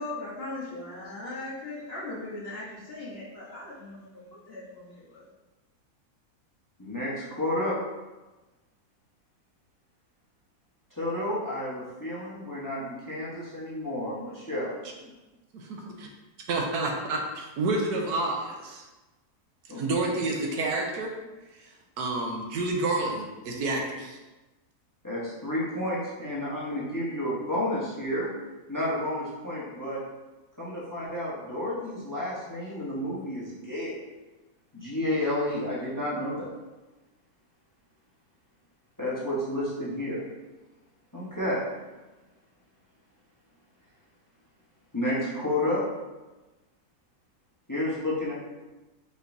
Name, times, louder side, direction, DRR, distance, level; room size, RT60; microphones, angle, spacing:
voice 1, 0.0-5.3, left 2 dB, 45° left, -6 dB, 1.1 m, -39 dB
voice 2, 6.8-7.8 10.9-14.7 19.7-19.8 25.0-28.3 28.7-30.0 30.6-34.0 34.7-36.5 39.0-40.2 41.1-41.6 44.9-45.8 47.7-48.3, left 1 dB, 15° left, -7 dB, 0.8 m, -31 dB
voice 3, 15.5-16.1 16.5-18.8 19.7-21.1 22.0-24.2, right 2 dB, 80° right, 1 dB, 1.2 m, -29 dB
5.2 x 3.7 x 2.6 m, 1.1 s
omnidirectional pair, 1.7 m